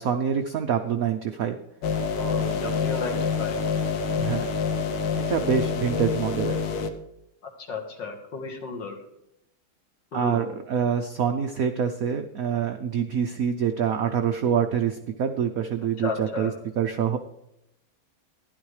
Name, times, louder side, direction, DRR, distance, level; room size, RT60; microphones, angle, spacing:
voice 1, 0.0-1.6 4.1-4.5 5.3-6.6 10.1-17.2, right 7 dB, 75° right, 6 dB, 0.8 m, -26 dB
sound 1, 1.8-6.9, left 5 dB, 80° left, 1.7 m, -27 dB
voice 2, 2.2-3.6 7.7-9.0 10.1-10.5 16.0-16.5, left 4 dB, 65° left, 3 dB, 2.2 m, -33 dB
12.0 x 11.0 x 3.2 m, 0.83 s
omnidirectional pair, 2.2 m